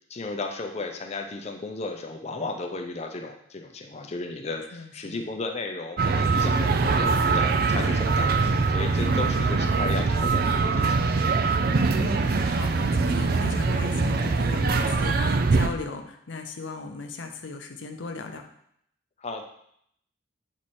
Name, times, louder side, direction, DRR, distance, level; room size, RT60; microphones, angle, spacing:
voice 1, 0.1-11.0 19.2-19.4, left 3 dB, 35° left, 3 dB, 0.5 m, -34 dB
voice 2, 4.7-5.2 9.1-9.4 11.9-18.4, left 3 dB, 90° left, 5 dB, 0.7 m, -37 dB
sound 1, 6.0-15.7, right 4 dB, 55° right, 0.4 m, -23 dB
7.1 x 3.2 x 4.3 m, 0.70 s
head